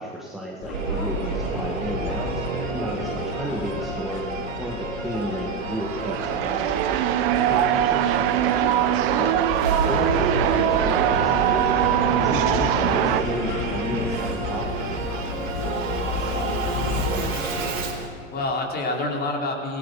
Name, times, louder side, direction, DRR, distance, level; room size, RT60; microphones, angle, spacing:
voice 1, 0.0-9.5 9.8-15.0, equal, ahead, -3 dB, 1.8 m, -33 dB
sound 1, 0.6-17.4, left 5 dB, 45° left, 2.7 m, -33 dB
Singing / Musical instrument, 0.7-18.1, right 4 dB, 85° right, 4.3 m, -29 dB
sound 2, 5.6-13.2, right 13 dB, 50° right, 1.1 m, -22 dB
voice 2, 7.4-7.8 16.2-16.5 17.0-17.7 18.3-19.8, left 2 dB, 25° left, 0 dB, 4.4 m, -29 dB
27.5 x 19.0 x 5.5 m, 2.5 s
hypercardioid pair, 120°, 38 cm